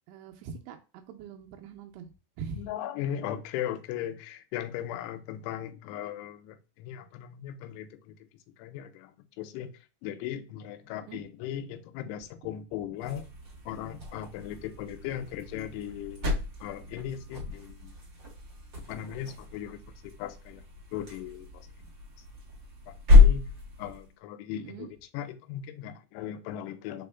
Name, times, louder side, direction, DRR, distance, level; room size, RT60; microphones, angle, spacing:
voice 1, 0.1-2.7 10.9-11.2 24.5-24.9, right 6 dB, 90° right, 2.7 m, -43 dB
voice 2, 2.5-8.2 8.6-9.7 10.0-13.3 13.7-18.0 18.8-20.6 20.9-21.9 22.9-23.5 23.8-27.1, left 10 dB, 85° left, 2.6 m, -38 dB
sound 1, 13.0-24.1, left 4 dB, 50° right, 1.4 m, -28 dB
5.3 x 4.2 x 2.2 m
omnidirectional pair, 4.8 m